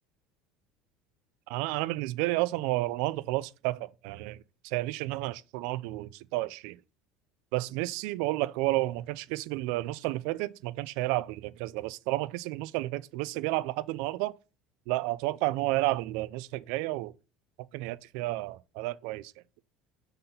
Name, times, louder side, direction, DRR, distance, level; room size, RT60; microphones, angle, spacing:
voice 1, 1.5-6.8 7.5-14.3 14.9-17.1 17.7-19.3, right 18 dB, 70° right, 0.3 m, -31 dB
5.9 x 4.0 x 5.4 m
cardioid pair, 165°, 0 cm